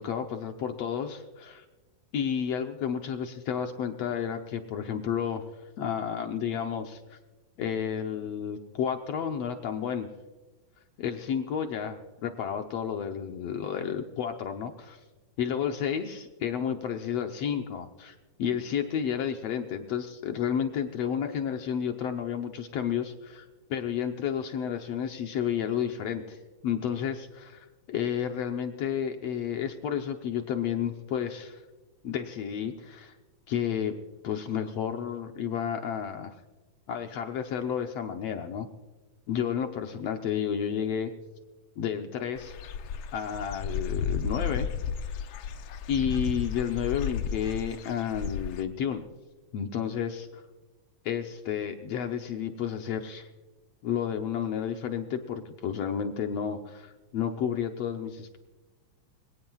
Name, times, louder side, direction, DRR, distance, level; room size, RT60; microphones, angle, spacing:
voice 1, 0.0-1.7 2.1-5.5 5.8-7.2 7.6-10.1 11.0-15.0 15.4-23.5 23.7-26.4 26.6-31.6 32.0-33.1 33.5-33.9 34.2-36.3 36.9-38.7 39.3-41.1 41.8-42.5 43.1-44.7 45.9-49.0 49.5-50.4 51.1-53.3 53.8-58.4, left 8 dB, 70° left, 5 dB, 1.7 m, -31 dB
Dog / Bird, 42.4-48.6, left 7 dB, 90° left, 1.2 m, -33 dB
25.0 x 17.5 x 2.4 m, 1.2 s
omnidirectional pair, 3.6 m